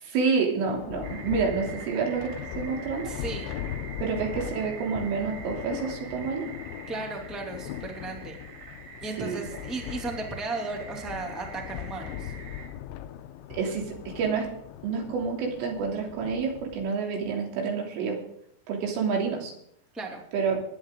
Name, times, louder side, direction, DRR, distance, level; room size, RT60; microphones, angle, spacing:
voice 1, 0.0-3.1 4.0-6.5 9.2-9.4 13.5-14.5 14.8-18.2 18.7-19.5 20.3-20.6, right 5 dB, 85° right, 0 dB, 5.6 m, -28 dB
Thunder, 0.7-16.9, left 10 dB, 80° left, 2.8 m, -39 dB
sound 1, 1.0-12.7, right 6 dB, 55° right, 4.2 m, -45 dB
voice 2, 3.0-3.5 6.9-8.4 9.0-12.3 19.9-20.2, right 3 dB, ahead, 1 dB, 0.4 m, -35 dB
21.0 x 10.0 x 3.8 m, 0.72 s
omnidirectional pair, 5.6 m